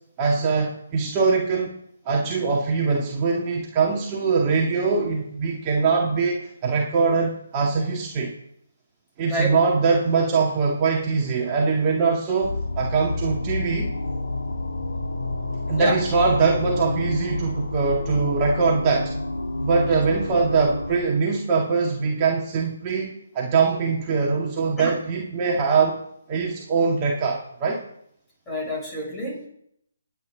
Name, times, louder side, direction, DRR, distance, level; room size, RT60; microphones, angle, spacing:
voice 1, 0.2-1.7 2.1-8.3 9.2-13.9 15.7-19.1 19.6-26.0 26.3-27.8, right 4 dB, 25° right, -2 dB, 2.1 m, -22 dB
sound 1, 12.4-21.0, left 2 dB, 80° left, 3.2 m, -29 dB
voice 2, 28.5-29.5, equal, 10° left, -4 dB, 6.7 m, -28 dB
20.0 x 9.0 x 3.9 m, 0.71 s
figure-of-eight pair, 145°, 0 cm